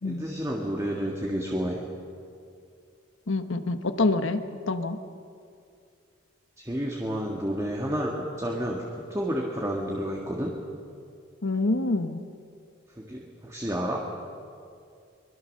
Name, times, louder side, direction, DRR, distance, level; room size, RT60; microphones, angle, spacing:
voice 1, 0.0-1.8 6.6-10.5 12.9-14.1, equal, 15° right, 0 dB, 1.7 m, -30 dB
voice 2, 3.3-5.0 11.4-12.2, left 2 dB, 75° left, 9 dB, 1.2 m, -26 dB
24.5 x 21.5 x 6.6 m, 2.4 s
head